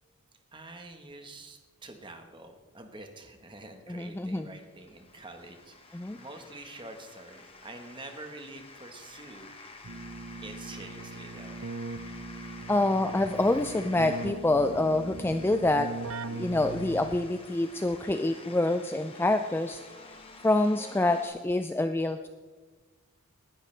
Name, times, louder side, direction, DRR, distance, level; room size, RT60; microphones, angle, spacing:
voice 1, 0.5-9.5 9.8-10.0 10.4-11.6, right 2 dB, 20° right, 5 dB, 1.3 m, -47 dB
voice 2, 3.9-4.5 5.9-6.2 12.7-15.9 16.3-19.8 20.4-22.3, left 2 dB, 10° left, 8 dB, 0.3 m, -26 dB
sound 1, 4.2-21.3, left 3 dB, 25° left, 1.3 m, -50 dB
Keyboard (musical), 9.8-17.4, right 3 dB, 60° right, 0.6 m, -40 dB
19.5 x 11.5 x 3.4 m, 1.3 s
head